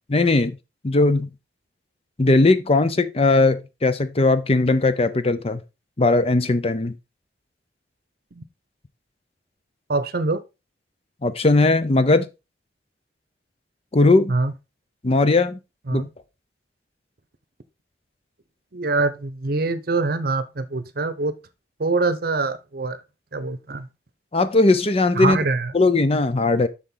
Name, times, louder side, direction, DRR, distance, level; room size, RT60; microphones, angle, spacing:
voice 1, 0.1-0.6 0.8-1.3 2.2-5.6 6.0-6.9 11.2-12.3 13.9-14.3 15.0-15.6 15.9-16.1 24.3-25.4 25.7-26.7, left 2 dB, 35° left, 0.7 m, -18 dB
voice 2, 9.9-10.4 14.3-14.5 15.9-16.1 18.7-21.3 21.8-23.0 23.3-23.9 25.1-25.7, right 3 dB, 55° right, 0.8 m, -24 dB
7.1 x 6.3 x 3.9 m
head